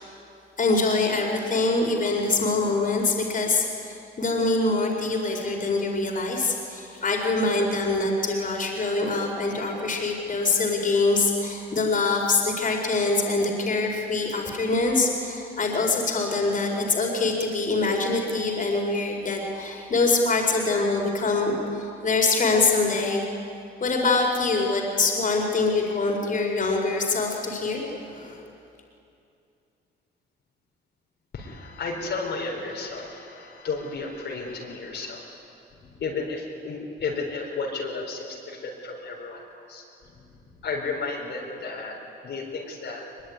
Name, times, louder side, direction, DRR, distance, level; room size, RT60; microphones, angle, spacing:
voice 1, 0.6-23.2 23.8-28.4, left 3 dB, 40° left, 1 dB, 4.6 m, -24 dB
voice 2, 31.3-35.2 35.8-42.0 42.2-43.0, left 4 dB, 65° left, -2 dB, 4.2 m, -33 dB
22.0 x 21.5 x 9.6 m, 2.6 s
cardioid pair, 90°, 20 cm